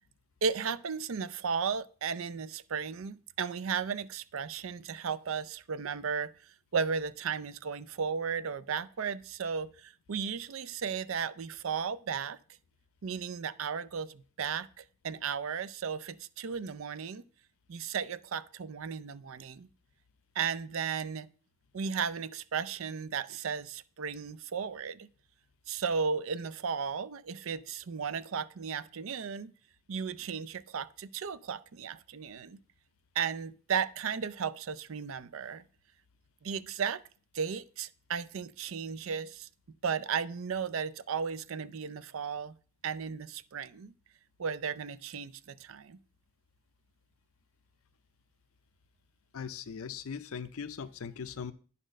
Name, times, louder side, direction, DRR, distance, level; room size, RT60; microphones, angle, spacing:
voice 1, 0.4-12.4 13.0-17.2 17.7-19.7 20.4-21.3 21.7-25.1 25.7-29.5 29.9-32.6 33.2-35.6 36.4-37.0 37.3-39.5 39.8-42.5 42.8-43.9 44.4-46.0, right 6 dB, 70° right, 0.5 m, -35 dB
voice 2, 49.3-51.5, left 6 dB, 85° left, 0.5 m, -39 dB
10.0 x 4.2 x 6.3 m
head